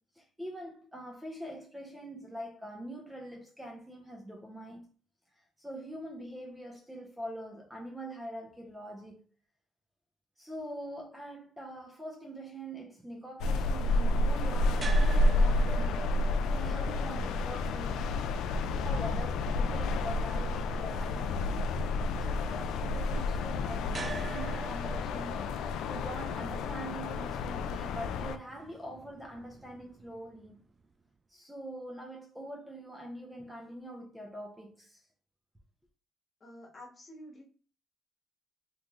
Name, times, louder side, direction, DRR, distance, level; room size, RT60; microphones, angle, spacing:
voice 1, 0.1-4.9 5.6-9.3 10.4-18.1 18.8-21.6 22.2-25.4 25.9-30.6 31.3-35.0, right 1 dB, 5° right, 0.8 m, -44 dB
sound 1, 13.4-28.4, left 2 dB, 80° left, 0.3 m, -30 dB
sound 2, 14.8-30.9, right 3 dB, 30° right, 0.3 m, -47 dB
voice 2, 36.4-37.4, equal, 35° left, 1.4 m, -49 dB
3.1 x 2.5 x 3.7 m
cardioid pair, 95°, 0 cm